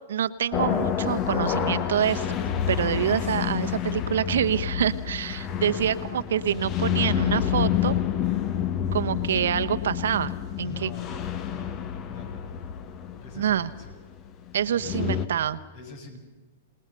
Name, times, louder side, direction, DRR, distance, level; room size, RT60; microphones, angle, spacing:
voice 1, 0.1-2.4 2.7-8.0 8.9-10.3 10.6-10.9 13.3-13.7 14.5-15.6, right 9 dB, 70° right, 11 dB, 1.1 m, -26 dB
sound 1, 0.5-15.3, left 9 dB, 35° left, 1.5 m, -28 dB
voice 2, 5.7-6.1 10.6-11.2 11.5-11.8 12.1-12.5 13.2-14.0 14.7-15.1 15.7-16.2, left 3 dB, 55° left, 5 dB, 7.0 m, -44 dB
28.0 x 19.5 x 6.8 m, 1.2 s
hypercardioid pair, 115°, 0 cm